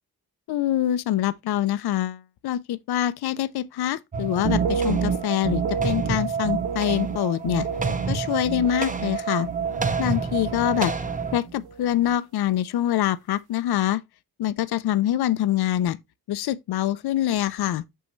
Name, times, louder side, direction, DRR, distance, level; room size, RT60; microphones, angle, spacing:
voice 1, 0.5-7.7 8.1-9.5 10.0-10.9 11.3-14.0 14.4-16.0 16.3-17.8, left 12 dB, 80° left, 0.6 m, -25 dB
sound 1, 4.1-11.4, right 5 dB, 20° right, 0.7 m, -29 dB
sound 2, 4.3-10.2 10.4-11.2 11.5-11.9, right 6 dB, 85° right, 0.8 m, -30 dB
6.2 x 5.6 x 3.1 m
cardioid pair, 100°, 37 cm